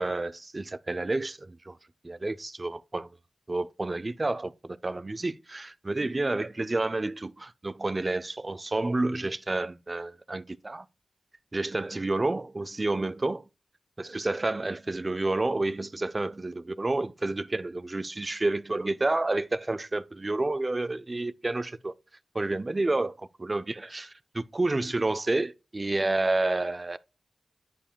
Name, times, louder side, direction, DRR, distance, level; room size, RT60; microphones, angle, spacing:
voice 1, 0.0-1.8 2.0-3.1 3.5-10.9 11.5-13.4 14.0-21.9 22.3-27.0, right 2 dB, 35° right, 0.3 m, -30 dB
9.9 x 4.9 x 2.3 m
cardioid pair, 45°, 0 cm